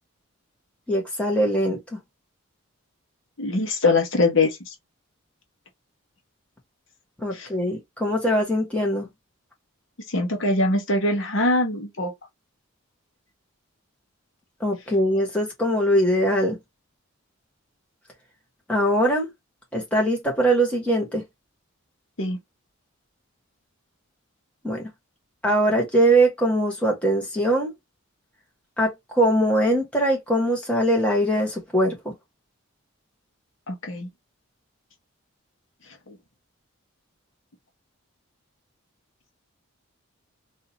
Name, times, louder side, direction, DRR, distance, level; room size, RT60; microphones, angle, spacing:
voice 1, 0.9-2.0 7.2-9.1 14.6-16.6 18.7-19.3 19.7-21.2 24.6-24.9 25.4-27.7 28.8-32.1, right 1 dB, 5° left, 1.5 m, -22 dB
voice 2, 3.4-4.7 7.3-7.5 10.1-12.1 22.2-22.4 33.7-34.1, left 2 dB, 60° left, 1.1 m, -23 dB
3.8 x 2.7 x 2.9 m
head